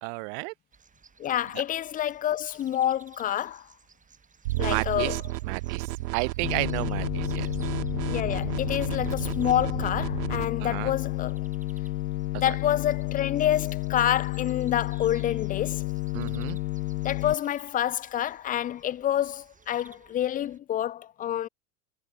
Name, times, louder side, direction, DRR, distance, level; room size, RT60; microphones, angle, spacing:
voice 1, 0.0-0.5 4.6-5.2 5.5-7.5 10.6-10.9 12.5-12.6 16.1-16.6, right 40 dB or more, 50° right, 0.7 m, -32 dB
sound 1, 0.7-20.6, right 5 dB, 15° right, 5.0 m, -57 dB
voice 2, 1.2-3.7 4.6-5.2 8.1-11.4 12.4-15.8 17.0-21.5, left 11 dB, 20° left, 0.5 m, -28 dB
sound 2, 4.5-10.5, right 19 dB, 80° right, 1.0 m, -32 dB
sound 3, 6.4-17.3, left 21 dB, 70° left, 1.4 m, -31 dB
supercardioid pair, 130°, 47 cm